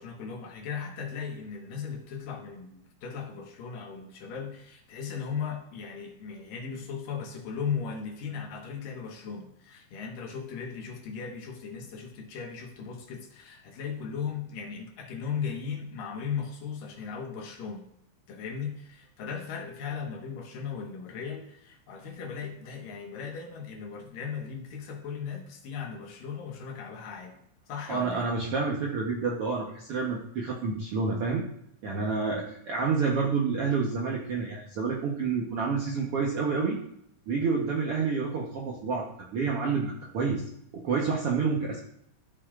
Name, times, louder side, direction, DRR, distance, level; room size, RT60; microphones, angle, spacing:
voice 1, 0.0-17.9 18.3-28.3, left 6 dB, 80° left, 2 dB, 3.0 m, -37 dB
voice 2, 27.9-31.4 31.8-36.8 37.3-40.4 40.7-41.8, right 4 dB, 65° right, -2 dB, 1.4 m, -29 dB
13.5 x 6.8 x 2.5 m, 0.74 s
omnidirectional pair, 3.9 m